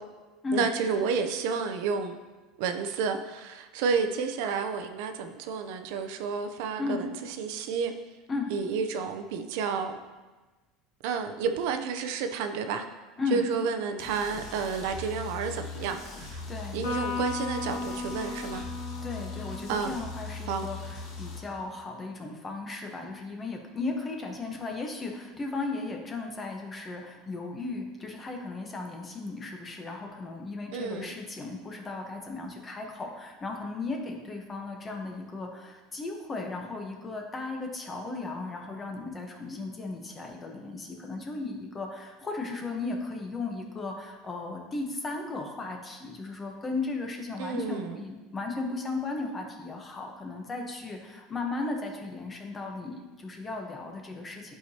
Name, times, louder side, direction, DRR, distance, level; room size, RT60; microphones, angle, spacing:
voice 1, 0.5-2.2 2.6-7.1 7.4-7.9 8.5-10.0 11.0-12.8 13.3-16.4 16.7-18.6 19.7-19.9 20.5-20.7 30.7-31.1 47.4-48.0, right 5 dB, 70° right, 7 dB, 0.5 m, -30 dB
sound 1, 14.0-21.4, left 4 dB, 50° left, 1.3 m, -40 dB
voice 2, 16.5-16.8 19.0-54.6, left 3 dB, 20° left, 2 dB, 0.9 m, -36 dB
Electric guitar, 16.8-20.4, left 4 dB, 80° left, 1.6 m, -36 dB
10.5 x 4.8 x 2.8 m, 1.2 s
supercardioid pair, 150°, 0 cm